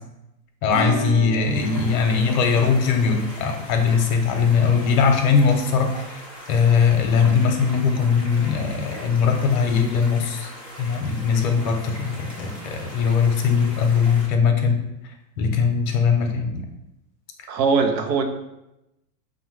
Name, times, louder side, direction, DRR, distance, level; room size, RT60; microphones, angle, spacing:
voice 1, 0.6-6.2 6.5-10.5 10.8-14.8 15.4-16.6, left 6 dB, 55° left, 4 dB, 0.8 m, -20 dB
Acoustic guitar / Strum, 0.7-9.3 9.6-9.7 10.0-10.1 10.4-10.5 12.6-12.7 13.8-13.9, right 2 dB, 20° left, 0.4 m, -38 dB
sound 1, 1.4-14.3, equal, 5° right, 0.8 m, -40 dB
voice 2, 17.5-18.2, right 5 dB, 80° right, 6 dB, 0.7 m, -20 dB
5.0 x 2.3 x 3.1 m, 0.90 s
hypercardioid pair, 130°, 50 cm